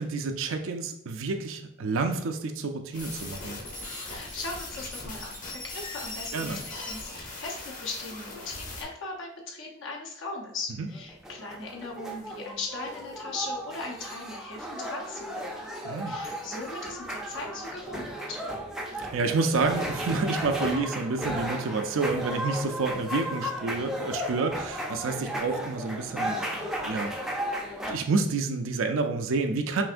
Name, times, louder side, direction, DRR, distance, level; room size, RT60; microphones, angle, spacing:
voice 1, 0.0-3.6 6.3-6.6 10.8-10.9 15.8-16.1 19.1-27.1 27.9-29.8, right 3 dB, 75° right, 5 dB, 0.4 m, -29 dB
sound 1, 2.9-8.8, left 2 dB, 40° left, 1.0 m, -39 dB
voice 2, 4.1-15.7 16.0-18.4, left 3 dB, 70° left, -2 dB, 0.9 m, -39 dB
sound 2, 10.9-27.9, equal, 5° right, 0.4 m, -35 dB
5.7 x 2.5 x 2.5 m, 0.82 s
head